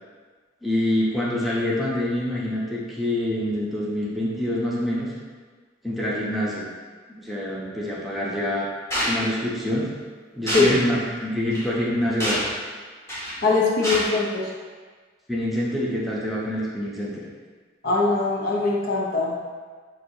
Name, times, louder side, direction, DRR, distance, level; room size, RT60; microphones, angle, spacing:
voice 1, 0.6-5.1 5.8-6.7 7.1-8.7 9.0-10.1 10.3-12.4 15.3-17.2, left 1 dB, ahead, -7 dB, 0.7 m, -26 dB
sound 1, 8.9-9.1 10.5-10.7 11.5-11.6 12.2-12.5 13.1-13.4 13.8-14.0, equal, 15° left, 1.0 m, -25 dB
voice 2, 13.4-14.5 17.8-19.5, left 3 dB, 50° left, -3 dB, 0.5 m, -22 dB
6.1 x 2.6 x 2.7 m, 1.5 s
head